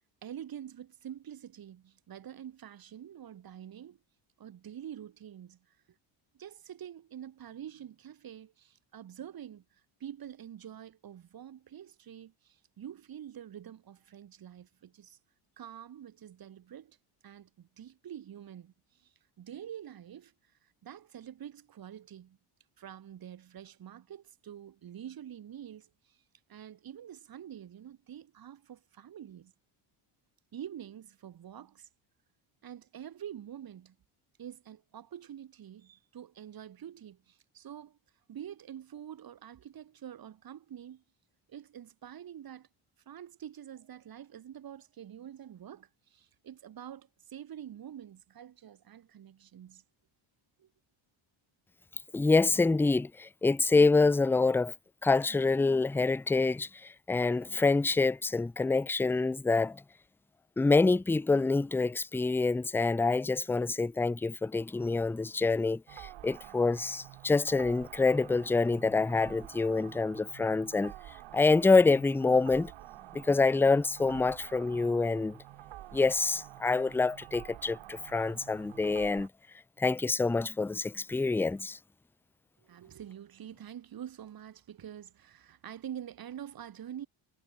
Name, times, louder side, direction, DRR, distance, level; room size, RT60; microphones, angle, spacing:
voice 1, 0.2-4.0 4.4-5.8 6.3-15.2 15.6-17.0 17.2-20.3 20.8-22.4 22.8-26.2 26.5-29.5 30.5-31.9 32.6-34.0 34.4-38.0 38.3-41.0 41.5-42.7 43.1-49.8 50.6-50.7 82.6-87.1, right 10 dB, 45° right, 2.6 m, -46 dB
voice 2, 52.1-54.7 55.0-59.8 60.6-70.9 71.3-72.7 73.1-75.4 75.9-79.3 79.8-81.8, left 3 dB, 5° left, 0.4 m, -26 dB
sound 1, 65.9-79.3, right 14 dB, 65° right, 2.0 m, -49 dB
cardioid pair, 150°, 50 cm